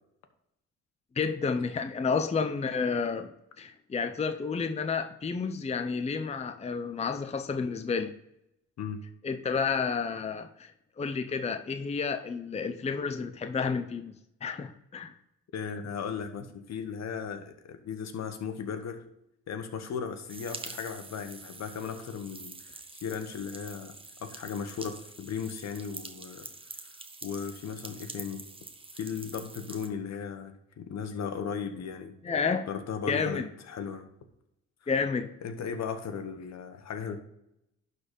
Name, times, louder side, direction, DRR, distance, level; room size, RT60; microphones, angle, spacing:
voice 1, 1.2-3.3 3.6-8.1 9.2-10.7 11.0-14.1 14.4-15.1 32.2-32.7 33.1-33.5 34.9-35.3, left 5 dB, 20° left, 8 dB, 0.6 m, -30 dB
voice 2, 15.5-19.0 19.5-23.9 24.2-26.5 27.2-28.4 29.0-32.1 32.7-34.1 34.8-34.9 35.4-37.2, left 6 dB, 60° left, 7 dB, 1.3 m, -36 dB
sound 1, 20.3-29.9, right 3 dB, 20° right, 1.1 m, -46 dB
11.5 x 4.3 x 5.3 m, 0.81 s
cardioid pair, 90°, 30 cm